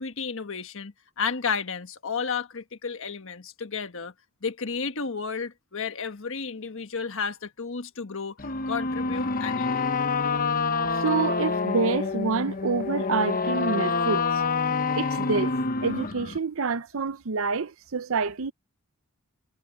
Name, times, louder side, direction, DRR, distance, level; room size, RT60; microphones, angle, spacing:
voice 1, 0.0-4.1 4.4-8.4 8.7-9.9, left 5 dB, 65° left, 1.4 m, -32 dB
sound 1, 8.4-16.4, left 4 dB, 40° left, 1.0 m, -27 dB
voice 2, 11.0-14.4 14.9-15.5 15.8-18.5, right 4 dB, 70° right, 0.7 m, -27 dB
head